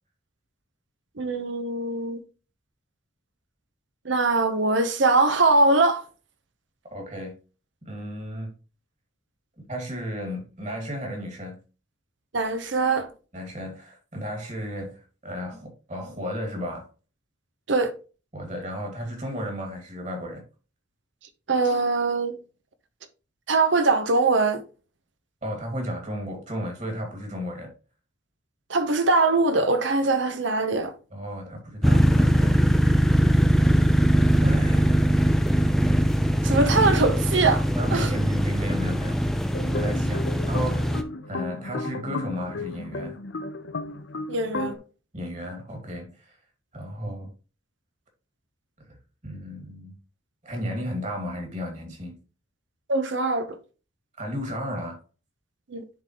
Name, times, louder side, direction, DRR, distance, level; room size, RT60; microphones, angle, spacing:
voice 1, 1.2-2.2 4.0-6.0 12.3-13.1 17.7-17.9 21.5-22.4 23.5-24.6 28.7-30.9 36.4-38.1 44.3-44.8 52.9-53.5 55.7-55.8, right 3 dB, 70° right, 0.8 m, -22 dB
voice 2, 6.9-7.3 7.8-8.5 9.7-11.6 13.3-16.9 18.3-20.4 25.4-27.7 31.1-33.1 34.4-35.3 37.8-39.3 39.7-41.0 41.3-43.2 45.1-46.4 46.7-47.3 48.8-49.0 49.2-50.0 50.4-52.2 54.2-55.0, equal, 35° right, 2.1 m, -34 dB
sound 1, 31.8-41.0, equal, ahead, 0.4 m, -21 dB
sound 2, 39.5-44.8, left 2 dB, 65° left, 0.6 m, -34 dB
10.5 x 3.9 x 3.0 m
head